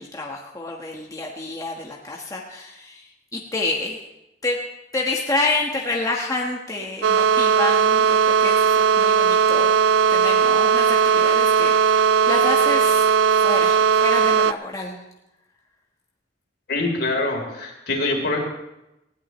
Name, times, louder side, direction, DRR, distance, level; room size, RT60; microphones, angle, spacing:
voice 1, 0.0-4.1 4.4-4.6 4.9-9.8 10.1-13.1 13.4-15.0, left 2 dB, 20° left, -1 dB, 1.3 m, -28 dB
sound 1, 7.0-14.5, right 6 dB, 90° right, 0.4 m, -18 dB
voice 2, 16.7-18.4, left 2 dB, 65° left, 1 dB, 3.5 m, -24 dB
19.0 x 16.0 x 3.1 m, 0.90 s
head